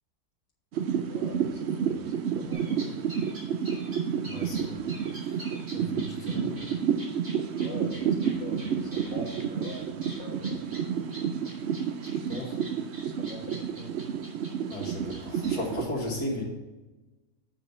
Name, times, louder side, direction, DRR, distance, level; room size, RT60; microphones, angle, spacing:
sound 1, 0.7-15.8, right 7 dB, 70° right, 0.6 m, -30 dB
voice 1, 1.1-3.1 7.6-9.8 10.2-10.6 13.0-14.0, left 2 dB, 55° left, -4 dB, 1.8 m, -44 dB
sound 2, 2.5-15.6, right 1 dB, 45° right, 3.6 m, -45 dB
voice 2, 4.2-4.8 5.7-6.7 12.3-12.6 14.7-16.4, left 1 dB, 75° left, -2 dB, 2.2 m, -35 dB
7.7 x 5.2 x 6.8 m, 1.2 s
omnidirectional pair, 1.7 m